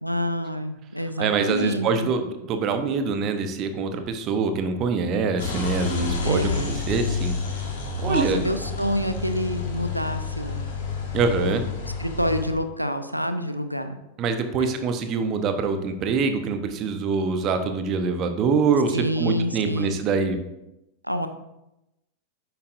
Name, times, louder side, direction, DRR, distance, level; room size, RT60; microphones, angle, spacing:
voice 1, 0.0-2.1 6.2-6.8 8.1-10.6 11.4-11.6 12.0-14.0 14.6-14.8 18.9-20.0 21.0-21.3, equal, 90° right, 9 dB, 0.6 m, -27 dB
voice 2, 1.2-7.3 8.0-8.4 11.1-11.6 14.2-20.4, right 5 dB, 35° right, 8 dB, 0.9 m, -24 dB
sound 1, 5.4-12.5, left 4 dB, 60° left, 1.7 m, -30 dB
9.8 x 7.6 x 2.6 m, 0.91 s
figure-of-eight pair, 90°, 0 cm